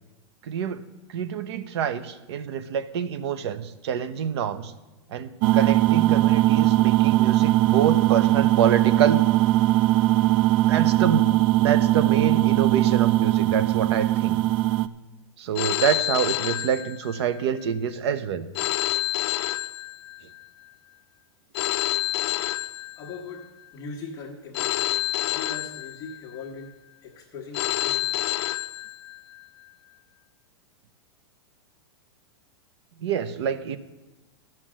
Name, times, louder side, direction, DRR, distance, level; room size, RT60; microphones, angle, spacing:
voice 1, 0.4-4.7 5.1-9.2 10.7-11.3 11.6-14.4 15.4-18.5 33.0-33.8, right 8 dB, 65° right, 12 dB, 0.9 m, -26 dB
sound 1, 5.4-14.9, right 16 dB, 45° right, 0.4 m, -20 dB
Telephone, 15.6-17.4 18.6-20.4 21.5-23.4 24.5-26.4 27.5-29.4, left 16 dB, 60° left, 0.5 m, -28 dB
voice 2, 22.6-25.0 25.3-28.3, left 4 dB, 25° left, -3 dB, 1.2 m, -40 dB
13.0 x 6.1 x 7.6 m, 1.1 s
supercardioid pair, 150°, 15 cm